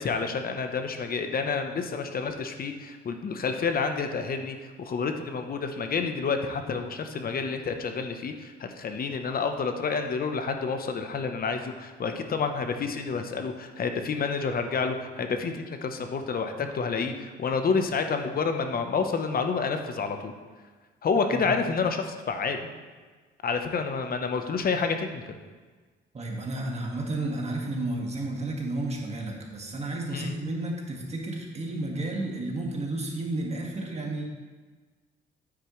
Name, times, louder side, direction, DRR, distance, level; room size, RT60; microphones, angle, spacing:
voice 1, 0.0-20.3 21.0-22.7 23.4-25.2 30.1-30.3, left 5 dB, 50° left, 6 dB, 0.9 m, -29 dB
voice 2, 26.1-34.2, right 2 dB, 35° right, 0 dB, 1.8 m, -32 dB
9.6 x 8.6 x 3.2 m, 1.4 s
cardioid pair, 90°, 20 cm